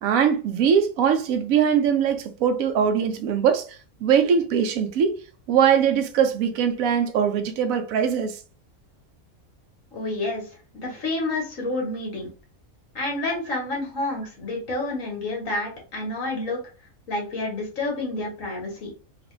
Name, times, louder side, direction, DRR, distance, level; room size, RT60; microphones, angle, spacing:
voice 1, 0.0-5.2 5.5-8.4, right 7 dB, 75° right, 1.0 m, -21 dB
voice 2, 9.9-10.4 10.7-12.3 12.9-16.6 17.1-18.9, left 2 dB, 65° left, 1.6 m, -29 dB
3.2 x 2.5 x 3.1 m
omnidirectional pair, 1.5 m